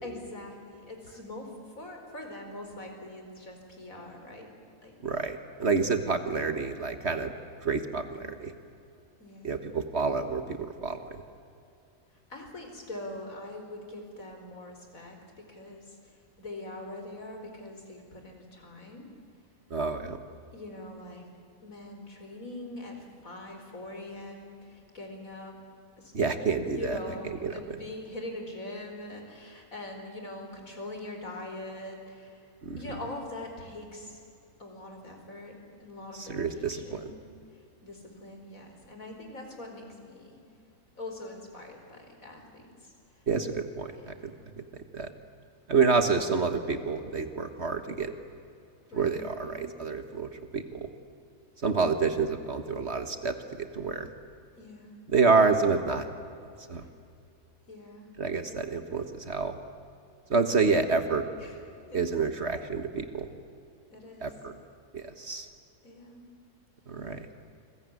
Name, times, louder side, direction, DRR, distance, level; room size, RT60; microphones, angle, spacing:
voice 1, 0.0-4.5 4.8-4.9 7.9-8.3 9.2-9.5 12.3-19.1 20.5-21.2 21.6-25.6 26.0-26.1 26.7-34.2 34.6-35.5 35.8-37.2 37.5-40.4 41.0-43.2 43.9-44.5 48.9-49.7 54.5-55.0 56.8-56.9 57.7-58.1 61.4-61.6 61.9-62.0 63.9-64.3 65.8-66.3, left 1 dB, 65° left, 3 dB, 5.0 m, -43 dB
voice 2, 5.0-7.3 7.6-8.5 9.4-11.2 19.7-20.2 26.1-27.0 27.4-27.5 32.6-32.8 36.2-37.0 43.3-44.1 44.6-44.7 44.9-45.1 45.7-48.1 48.9-50.9 51.6-54.1 55.1-56.1 56.7-56.8 58.2-59.6 60.3-61.2 61.9-63.3 64.2-64.5 64.9-65.5 66.9-67.3, right 4 dB, 45° right, 8 dB, 1.7 m, -28 dB
28.5 x 21.0 x 9.6 m, 2.5 s
omnidirectional pair, 1.6 m